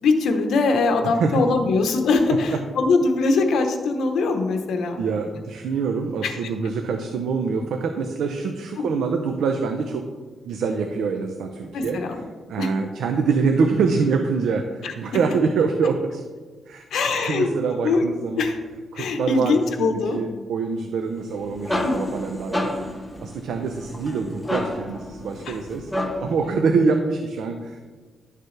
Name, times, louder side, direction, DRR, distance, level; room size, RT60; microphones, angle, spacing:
voice 1, 0.0-5.0 6.2-6.4 8.8-9.0 11.7-12.2 12.6-12.7 14.8-14.9 16.9-17.5 17.8-18.0 18.4-18.6 19.0-20.2 21.8-22.1 25.4-25.6, left 3 dB, 85° left, 5 dB, 1.0 m, -22 dB
voice 2, 1.0-1.4 2.3-2.6 4.7-10.0 10.4-12.0 12.5-16.2 16.7-18.5 18.9-22.7 23.2-27.8, right 5 dB, 85° right, 5 dB, 0.6 m, -25 dB
sound 1, 21.2-26.4, left 1 dB, 5° left, 1.1 m, -30 dB
11.5 x 6.7 x 3.3 m, 1.4 s
cardioid pair, 110°, 0 cm